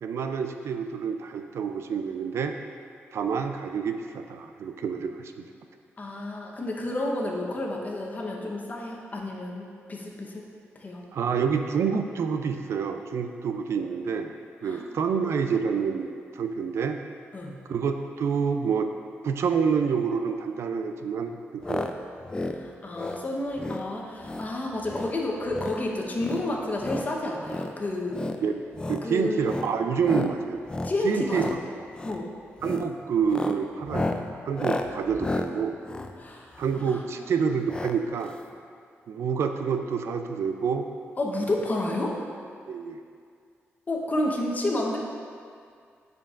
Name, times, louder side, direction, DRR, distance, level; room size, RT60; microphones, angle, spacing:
voice 1, 0.0-2.6 3.1-5.3 11.1-14.3 14.6-17.0 17.7-18.9 19.2-21.9 28.4-30.6 31.0-31.5 31.8-31.9 32.6-35.8 36.6-38.3 39.1-40.9 42.7-43.0, right 6 dB, 75° right, 6 dB, 0.4 m, -28 dB
voice 2, 6.0-10.4 10.7-11.0 14.6-14.8 17.3-17.5 22.5-28.2 29.0-29.5 30.8-31.6 32.0-32.3 36.2-36.6 36.9-37.0 41.2-42.1 43.9-45.0, left 1 dB, 35° left, -1 dB, 0.9 m, -30 dB
sound 1, 21.6-21.9 22.2-22.6 22.9-23.2 23.6-23.8 24.2-24.5 24.8-25.1 25.5-25.8 26.2-27.1 27.4-27.7 28.1-28.4 28.7-29.0 29.4-29.7 30.0-30.3 30.7-31.0 31.3-31.6 31.9-32.2 32.6-32.9 33.2-36.9 37.7-38.0 38.2-38.3 38.5-38.6, left 2 dB, 20° left, 0.4 m, -32 dB
9.6 x 5.2 x 2.5 m, 2.2 s
cardioid pair, 100°, 5 cm